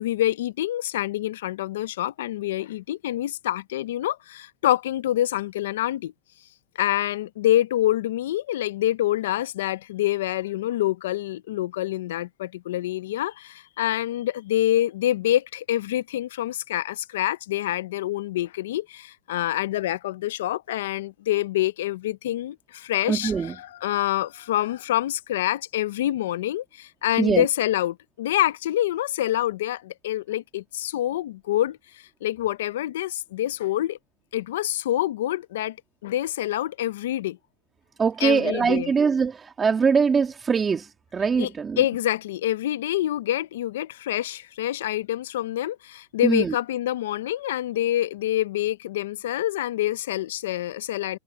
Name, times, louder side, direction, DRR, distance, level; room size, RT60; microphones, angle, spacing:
voice 1, 0.0-6.1 6.8-31.8 32.2-34.0 34.3-35.8 36.0-37.4 38.2-38.9 41.4-41.5 41.8-51.2, left 13 dB, 85° left, 0.6 m, -26 dB
voice 2, 23.1-23.6 27.2-27.5 38.0-41.8 46.2-46.6, right 5 dB, 20° right, 1.9 m, -22 dB
supercardioid pair, 135°, 0 cm